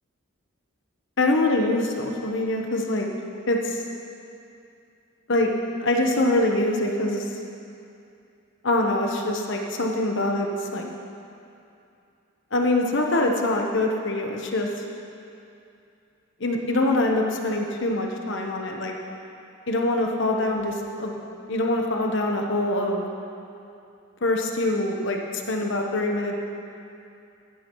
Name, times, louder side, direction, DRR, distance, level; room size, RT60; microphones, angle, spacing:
voice 1, 1.2-3.1 3.5-3.8 5.3-5.5 5.8-7.2 8.6-10.9 12.5-14.7 16.4-18.9 19.7-21.2 21.5-23.0 24.2-26.3, left 2 dB, 55° left, 1 dB, 1.0 m, -24 dB
16.0 x 12.0 x 3.1 m, 2.6 s
head